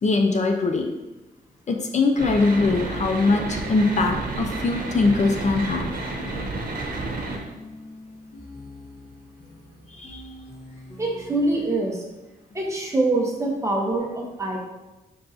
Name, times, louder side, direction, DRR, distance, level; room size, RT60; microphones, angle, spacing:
voice 1, 0.0-0.9 1.7-5.9 9.9-10.2, left 3 dB, 45° left, 3 dB, 0.6 m, -22 dB
sound 1, 2.2-7.4, right 2 dB, 60° right, 1.3 m, -30 dB
sound 2, 4.9-11.7, left 1 dB, 90° left, 2.3 m, -44 dB
voice 2, 11.0-12.0 12.5-14.6, right 2 dB, 20° right, -1 dB, 1.3 m, -24 dB
6.3 x 4.5 x 4.2 m, 1.0 s
wide cardioid pair, 145°, 16 cm